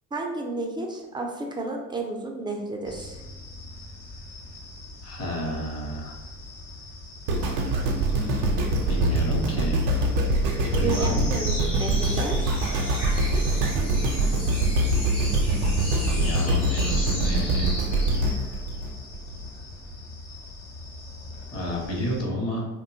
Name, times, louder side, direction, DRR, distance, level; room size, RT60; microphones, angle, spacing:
voice 1, 0.1-3.2 10.8-12.4, right 2 dB, 10° right, 1 dB, 0.3 m, -31 dB
sound 1, 2.8-22.3, left 1 dB, 65° left, 0.8 m, -42 dB
voice 2, 5.0-6.1 8.9-9.8 10.6-11.3 16.1-17.7 21.5-22.6, left 1 dB, 35° left, -1 dB, 0.9 m, -31 dB
sound 2, 7.3-19.5 20.0-20.1, right 1 dB, 80° right, 0.5 m, -24 dB
sound 3, 10.9-18.5, left 1 dB, 85° left, 1.0 m, -36 dB
2.6 x 2.2 x 2.5 m, 1.0 s
hypercardioid pair, 60°, 42 cm